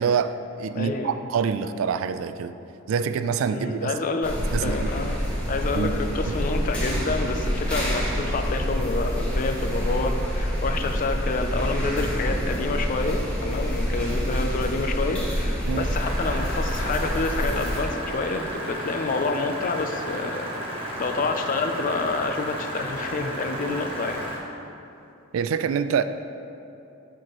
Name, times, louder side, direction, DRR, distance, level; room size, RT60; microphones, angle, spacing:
voice 1, 0.0-2.5 2.9-3.9 4.5-4.9 5.7-5.9 15.7-15.8 25.3-26.0, right 6 dB, 75° right, 11 dB, 0.3 m, -26 dB
voice 2, 0.7-1.2 3.5-5.2 5.5-20.5 21.0-24.2, left 3 dB, 40° left, 6 dB, 0.4 m, -28 dB
sound 1, 4.2-17.8, equal, 5° left, 1.2 m, -27 dB
sound 2, 16.0-24.4, equal, 25° right, 1.1 m, -33 dB
8.5 x 4.6 x 3.0 m, 2.8 s
head